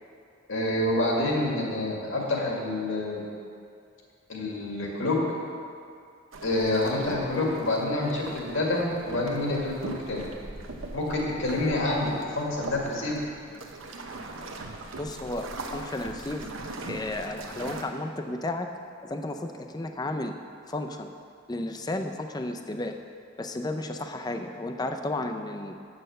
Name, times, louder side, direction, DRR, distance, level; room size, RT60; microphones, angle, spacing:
voice 1, 0.5-3.2 4.3-5.2 6.4-10.2 10.9-13.2, left 2 dB, 85° left, -2 dB, 2.0 m, -27 dB
sound 1, 6.3-17.8, right 2 dB, 85° right, 0.8 m, -41 dB
voice 2, 15.0-16.5 16.9-18.7 19.0-20.3 20.7-21.1 21.5-22.9 23.4-25.8, left 2 dB, 20° left, 5 dB, 0.5 m, -33 dB
8.0 x 6.4 x 6.5 m, 2.4 s
head